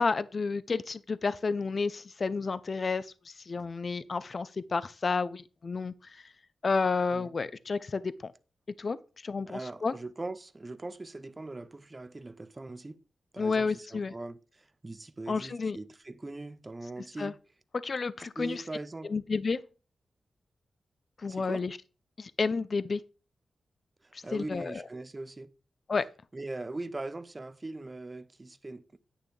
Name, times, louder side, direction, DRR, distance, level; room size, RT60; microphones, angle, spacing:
voice 1, 0.0-6.2 6.6-8.3 8.8-9.0 9.2-9.9 13.4-14.1 15.3-15.8 17.2-17.3 17.8-18.6 19.0-19.6 21.2-21.8 22.2-23.0 24.3-24.8 25.9-26.1, left 4 dB, 50° left, 0.5 m, -31 dB
voice 2, 9.5-13.0 13.3-17.4 18.4-19.1 21.3-21.7 24.0-25.5 26.3-29.0, right 2 dB, 30° right, 0.8 m, -41 dB
10.0 x 8.6 x 3.3 m
cardioid pair, 65°, 0 cm